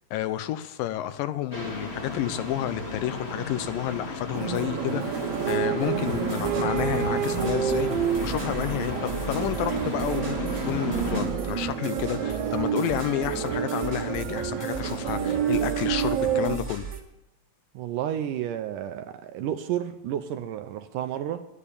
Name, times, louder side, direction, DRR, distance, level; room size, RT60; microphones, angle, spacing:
voice 1, 0.1-16.9, left 12 dB, 80° left, 2.3 m, -30 dB
sound 1, 1.5-11.2, left 2 dB, 25° left, 1.4 m, -34 dB
sound 2, 4.3-16.6, right 8 dB, 60° right, 2.4 m, -28 dB
sound 3, 6.1-17.0, right 5 dB, 25° right, 1.5 m, -38 dB
voice 2, 17.8-21.5, right 10 dB, 80° right, 2.0 m, -31 dB
10.5 x 10.0 x 8.4 m
omnidirectional pair, 4.1 m